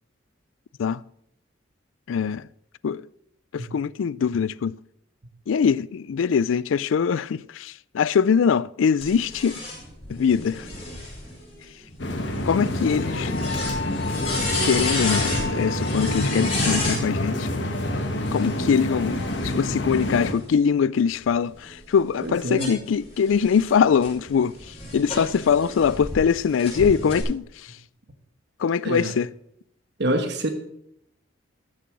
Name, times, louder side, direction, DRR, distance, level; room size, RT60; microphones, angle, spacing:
voice 1, 2.1-2.5 2.8-3.0 3.5-4.7 5.5-9.6 10.1-10.7 12.4-13.4 14.6-17.5 18.3-27.4 28.6-29.3, left 6 dB, 80° left, 0.4 m, -22 dB
sound 1, 9.0-17.0 18.1-20.5 21.1-26.2 26.6-27.2, left 2 dB, 30° left, 5.4 m, -33 dB
sound 2, 12.0-20.3, left 1 dB, 65° left, 1.4 m, -27 dB
voice 2, 22.2-22.8 28.8-29.1 30.0-30.5, right 1 dB, 60° right, 1.3 m, -26 dB
13.5 x 7.0 x 6.0 m
head